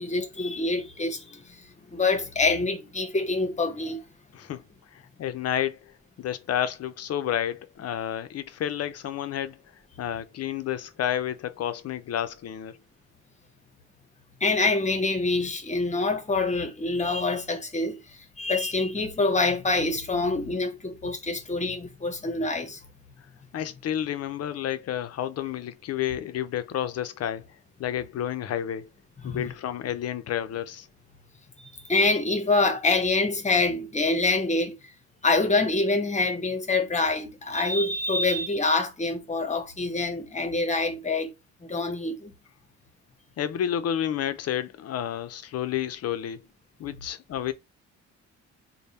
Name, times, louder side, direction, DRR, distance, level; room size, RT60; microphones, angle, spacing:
voice 1, 0.0-1.6 1.9-4.0 14.4-18.0 18.4-22.8 29.2-29.5 31.6-34.8 35.2-41.3 41.6-42.3, left 3 dB, 25° left, 0.9 m, -26 dB
voice 2, 4.9-5.8 6.2-9.6 10.0-12.8 23.5-27.5 27.8-28.9 29.2-30.9 43.4-46.4 46.8-47.5, left 10 dB, 55° left, 0.6 m, -30 dB
3.4 x 2.2 x 4.1 m
cardioid pair, 90°, 30 cm